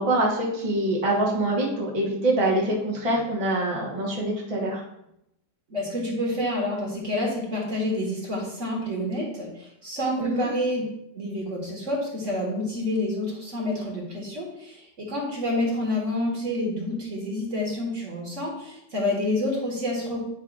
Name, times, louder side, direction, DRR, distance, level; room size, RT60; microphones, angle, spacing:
voice 1, 0.0-4.8 10.2-10.5, right 1 dB, 20° right, -3 dB, 1.2 m, -25 dB
voice 2, 5.7-10.8 11.1-20.2, left 1 dB, 45° right, -2 dB, 1.8 m, -28 dB
9.5 x 5.5 x 2.5 m, 0.80 s
omnidirectional pair, 1.9 m